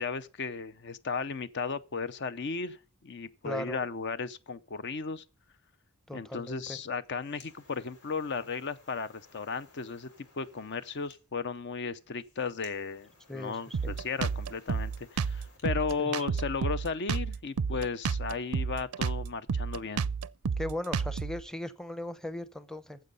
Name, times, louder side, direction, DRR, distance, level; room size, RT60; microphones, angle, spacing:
voice 1, 0.0-5.2 6.1-10.1 10.4-20.0, left 5 dB, 55° left, 0.6 m, -35 dB
voice 2, 3.4-3.8 6.1-6.8 13.3-13.9 16.0-16.3 20.6-23.0, left 1 dB, 5° left, 0.7 m, -38 dB
sound 1, 7.0-15.7, left 3 dB, 85° left, 3.7 m, -60 dB
Drum kit, 13.7-21.4, right 5 dB, 85° right, 0.5 m, -31 dB
9.3 x 7.6 x 8.2 m
head